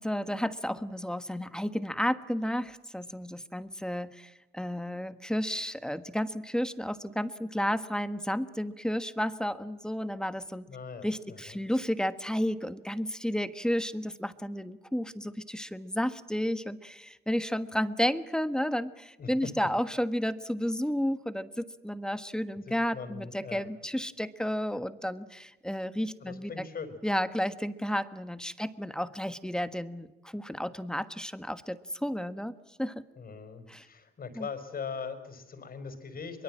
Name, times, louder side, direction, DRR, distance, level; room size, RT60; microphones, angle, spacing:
voice 1, 0.0-10.7 11.0-26.5 27.0-32.5 32.8-33.0 33.7-33.8 34.4-34.5, equal, 5° left, 11 dB, 1.4 m, -32 dB
voice 2, 10.7-11.6 19.2-19.5 22.7-23.7 26.2-26.9 33.1-36.4, left 5 dB, 50° left, 9 dB, 5.0 m, -41 dB
23.5 x 23.0 x 7.5 m, 1.1 s
cardioid pair, 90°, 20 cm